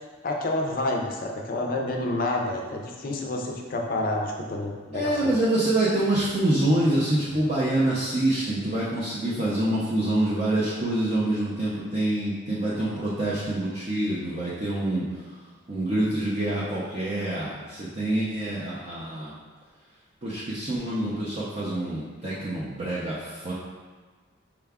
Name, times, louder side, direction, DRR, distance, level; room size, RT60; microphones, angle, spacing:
voice 1, 0.2-5.3, left 2 dB, 45° left, 1 dB, 0.4 m, -29 dB
voice 2, 4.9-15.3 15.7-19.3 20.2-23.5, right 1 dB, 35° right, -9 dB, 0.5 m, -26 dB
4.6 x 2.2 x 3.5 m, 1.4 s
head